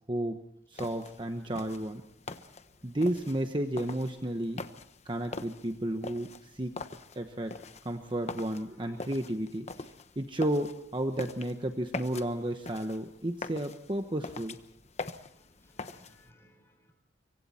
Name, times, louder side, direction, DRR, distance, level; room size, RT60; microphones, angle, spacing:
voice 1, 0.1-0.4 0.7-2.0 2.8-4.6 5.0-6.8 7.1-7.6 7.8-9.7 10.2-14.6, right 1 dB, 25° right, 6 dB, 1.1 m, -32 dB
sound 1, 0.7-16.3, left 3 dB, 35° left, 1.1 m, -44 dB
voice 2, 15.3-16.9, left 1 dB, 15° left, 2 dB, 6.9 m, -62 dB
25.5 x 24.0 x 4.3 m, 0.64 s
head